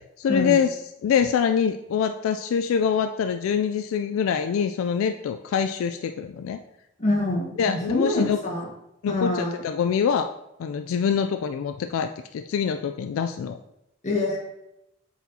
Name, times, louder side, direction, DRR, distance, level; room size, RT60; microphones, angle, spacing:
voice 1, 0.2-0.7 1.0-6.6 7.6-8.4 9.0-10.3 10.6-13.6, left 7 dB, 85° left, 8 dB, 0.3 m, -24 dB
voice 2, 7.0-8.7 9.1-9.5 14.0-14.4, left 2 dB, 35° left, -2 dB, 1.5 m, -25 dB
8.2 x 4.2 x 2.7 m, 0.83 s
head